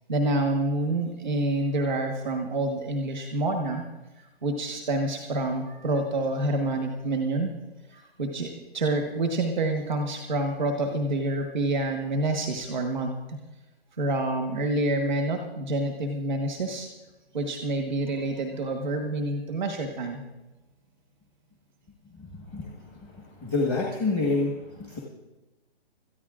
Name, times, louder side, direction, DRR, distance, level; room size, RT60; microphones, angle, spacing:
voice 1, 0.1-3.8 4.2-7.5 7.9-13.4 14.0-16.9 17.3-20.2, right 2 dB, ahead, 3 dB, 0.4 m, -27 dB
voice 2, 22.1-25.0, left 3 dB, 20° left, -1 dB, 1.3 m, -29 dB
26.0 x 13.5 x 2.4 m, 1.1 s
hypercardioid pair, 165°, 31 cm